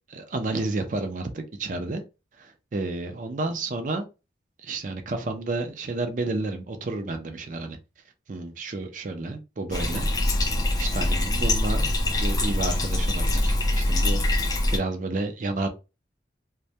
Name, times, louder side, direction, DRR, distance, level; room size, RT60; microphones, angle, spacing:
voice 1, 0.1-2.0 2.4-4.1 4.6-7.8 8.3-10.1 10.8-11.9 12.2-15.7, right 2 dB, 45° right, 0.4 m, -31 dB
Bathtub (filling or washing), 9.7-14.8, left 1 dB, 20° left, 0.3 m, -24 dB
2.2 x 2.1 x 2.7 m
head